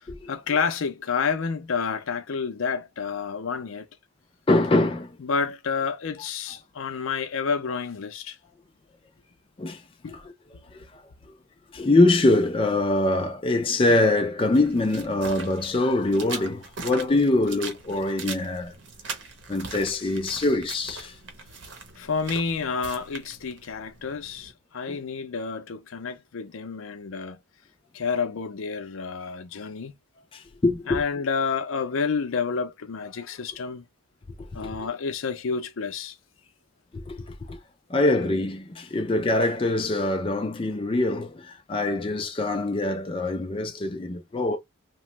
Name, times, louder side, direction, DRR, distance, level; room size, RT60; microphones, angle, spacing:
voice 1, 0.3-3.9 5.2-8.4 10.0-10.2 22.0-27.4 27.9-29.9 30.9-33.8 34.5-36.1, left 5 dB, 80° left, 0.5 m, -29 dB
voice 2, 4.5-5.1 9.6-9.8 10.1-10.3 10.7-10.9 11.7-18.7 19.5-21.2 24.9-25.0 30.3-31.0 34.6-34.9 36.9-37.2 37.5-37.6 37.9-44.6, left 2 dB, 25° left, 0.4 m, -24 dB
sound 1, 14.5-24.5, right 4 dB, 65° right, 0.8 m, -41 dB
2.9 x 2.1 x 3.0 m
head